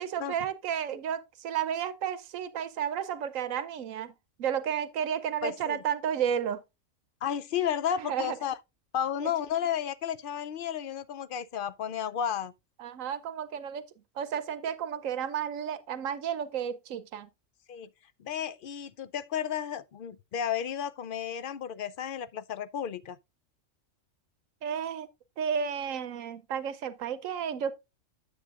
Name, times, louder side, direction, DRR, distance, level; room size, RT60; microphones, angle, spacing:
voice 1, 0.0-4.1 4.4-6.6 8.0-8.4 9.2-9.3 12.8-13.8 14.2-17.3 24.6-25.1 25.4-27.7, right 8 dB, 85° right, 1.1 m, -32 dB
voice 2, 5.4-5.8 7.2-8.6 8.9-12.5 17.7-17.9 18.2-23.2, left 9 dB, 60° left, 0.6 m, -32 dB
9.4 x 7.5 x 2.4 m
omnidirectional pair, 1.3 m